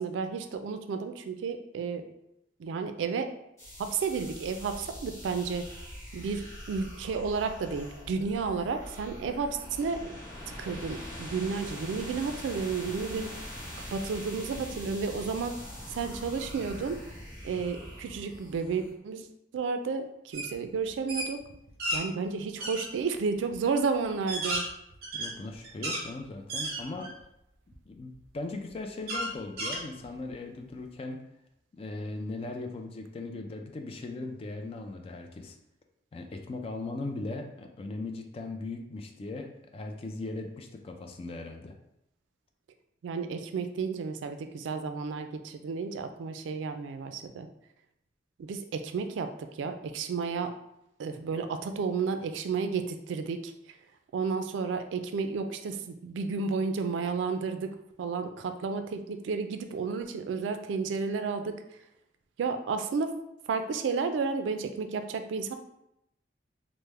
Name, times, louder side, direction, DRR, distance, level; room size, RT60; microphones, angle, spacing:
voice 1, 0.0-2.0 2.6-3.3 3.8-5.7 6.1-6.4 6.7-10.1 10.6-13.3 13.8-15.6 15.9-17.0 17.4-19.3 19.5-21.4 21.9-24.6 43.0-47.5 48.4-50.5 51.0-53.5 54.1-57.7 58.0-61.6 62.4-63.1 63.5-65.6, right 5 dB, 90° right, 8 dB, 0.3 m, -32 dB
sound 1, 3.6-18.9, equal, 15° left, 0.8 m, -43 dB
sound 2, 20.3-20.5 20.9-22.0 22.6-22.9 23.5-23.6 24.1-26.1 26.5-27.2 27.7-27.8 29.1-30.3, right 1 dB, 55° right, 0.7 m, -33 dB
voice 2, 25.1-27.1 27.7-31.2 31.7-35.6 36.1-41.8, left 2 dB, 30° left, 4 dB, 0.3 m, -38 dB
3.3 x 2.0 x 3.1 m, 0.83 s
head